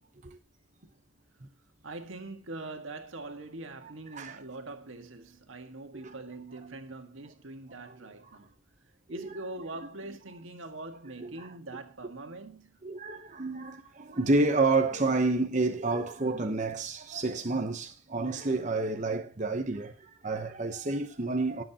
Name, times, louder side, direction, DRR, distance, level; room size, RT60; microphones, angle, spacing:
voice 1, 1.8-8.5 9.1-12.7, right 2 dB, 80° right, 1.7 m, -43 dB
voice 2, 11.2-11.5 12.8-21.6, right 3 dB, 35° right, 0.9 m, -29 dB
20.0 x 7.8 x 2.9 m
head